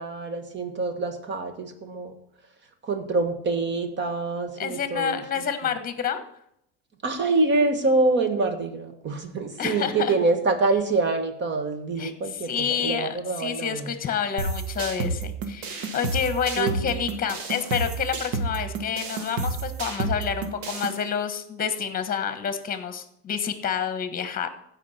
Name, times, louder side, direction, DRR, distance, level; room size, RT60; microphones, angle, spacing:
voice 1, 0.0-2.1 2.8-5.4 7.0-13.9 16.6-16.9, right 3 dB, 30° right, 7 dB, 1.6 m, -26 dB
voice 2, 4.6-6.2 9.6-10.1 12.0-12.1 12.4-24.5, left 7 dB, 25° left, 10 dB, 1.3 m, -28 dB
sound 1, 14.4-21.0, right 3 dB, 70° right, 1.9 m, -30 dB
15.5 x 5.6 x 4.3 m, 0.74 s
supercardioid pair, 125°, 35 cm